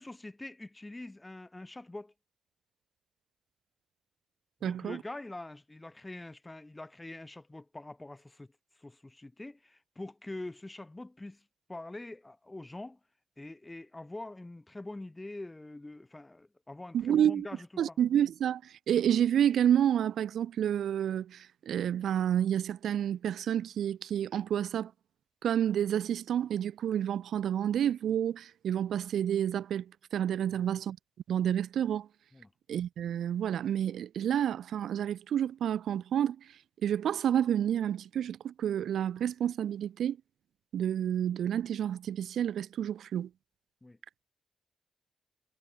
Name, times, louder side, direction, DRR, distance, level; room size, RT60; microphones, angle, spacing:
voice 1, 0.0-2.1 4.6-8.5 8.8-11.4 11.7-13.0 13.4-18.0 30.5-30.7 32.3-32.5 43.8-44.0, left 2 dB, 20° left, 1.0 m, -44 dB
voice 2, 4.6-5.0 16.9-17.5 17.8-24.9 25.4-31.0 31.3-32.1 32.7-36.4 36.8-40.2 40.7-43.3, right 10 dB, 80° right, 0.5 m, -29 dB
cardioid pair, 70°, 0 cm